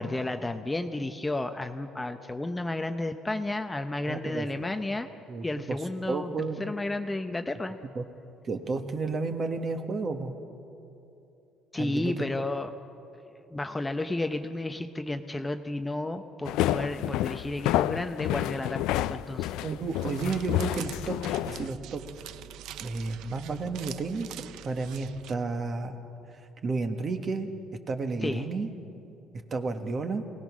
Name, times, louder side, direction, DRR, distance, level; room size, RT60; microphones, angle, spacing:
voice 1, 0.0-5.1 5.4-6.3 6.6-7.8 11.7-12.7 13.3-19.6 28.2-28.4, left 2 dB, 10° left, 7 dB, 0.7 m, -32 dB
voice 2, 4.1-4.5 5.3-5.8 6.1-6.6 7.9-8.0 8.4-10.3 11.8-12.2 19.6-21.2 21.5-22.0 22.8-25.9 26.6-27.5 27.9-28.7 29.5-30.2, right 3 dB, 35° right, 6 dB, 1.5 m, -32 dB
sound 1, 16.4-21.7, left 14 dB, 85° left, 0.4 m, -29 dB
sound 2, 19.6-25.3, right 12 dB, 75° right, 0.6 m, -45 dB
24.0 x 18.0 x 6.2 m, 2.8 s
cardioid pair, 135°, 0 cm